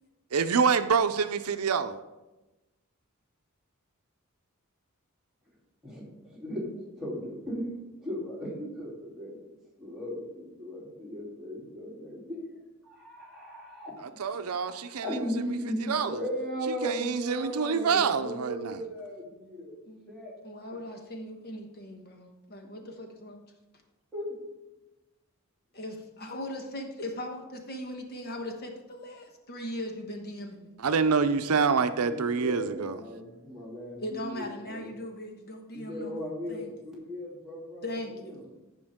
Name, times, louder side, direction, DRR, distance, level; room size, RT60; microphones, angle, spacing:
voice 1, 0.3-2.0 14.2-15.1 15.9-16.2 16.8-18.8 30.8-33.0, right 5 dB, 85° right, 0.6 m, -26 dB
voice 2, 5.8-6.6 6.9-9.4 9.8-12.4 12.8-13.9 14.6-19.7 20.0-20.3 20.7-20.8 24.1-24.4 32.0-34.9 35.7-38.5, equal, 5° right, 3.2 m, -37 dB
voice 3, 20.4-23.4 25.7-30.7 34.0-36.2 36.5-36.7 37.8-38.3, left 1 dB, 45° left, 1.2 m, -39 dB
15.0 x 5.2 x 3.6 m
head